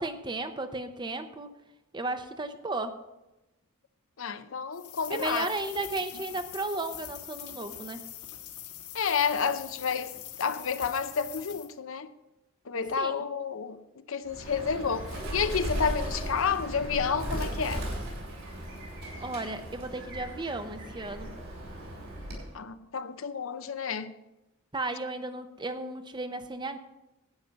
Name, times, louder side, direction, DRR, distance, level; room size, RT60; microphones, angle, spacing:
voice 1, 0.0-1.5 1.9-3.0 5.1-8.0 13.0-13.2 19.2-21.3 24.7-26.8, right 2 dB, 20° right, 0.7 m, -34 dB
voice 2, 4.2-5.5 8.9-12.1 12.7-13.8 14.1-17.8 22.5-24.1, left 6 dB, 60° left, 0.6 m, -30 dB
sound 1, 4.7-11.7, left 11 dB, 80° left, 1.7 m, -44 dB
Bird, 14.3-22.6, equal, 65° right, 5.3 m, -37 dB
12.0 x 9.2 x 5.2 m
head